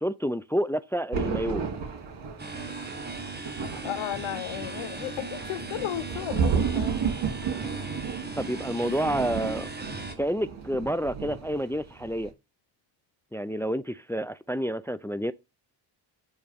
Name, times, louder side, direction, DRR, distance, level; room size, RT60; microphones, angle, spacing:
voice 1, 0.0-1.6 8.4-9.7 10.2-12.3 13.3-15.3, equal, 5° left, 0.3 m, -29 dB
Thunder, 1.1-11.7 12.0-12.3, right 6 dB, 65° right, 2.8 m, -33 dB
sound 1, 2.4-10.1, right 3 dB, 20° right, 1.6 m, -37 dB
voice 2, 3.8-7.0 8.8-9.4, left 14 dB, 85° left, 0.7 m, -35 dB
9.1 x 3.1 x 5.1 m
cardioid pair, 75°, 47 cm